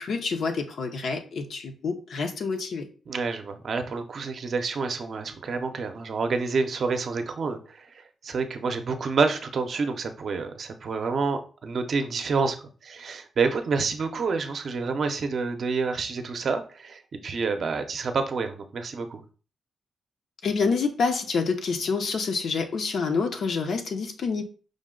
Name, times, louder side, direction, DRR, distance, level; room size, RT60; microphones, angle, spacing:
voice 1, 0.0-2.9 20.4-24.4, left 4 dB, 60° left, 5 dB, 0.7 m, -27 dB
voice 2, 3.1-12.6 12.8-19.2, right 4 dB, 50° right, 7 dB, 0.6 m, -28 dB
5.1 x 2.1 x 3.7 m, 0.38 s
cardioid pair, 120°, 0 cm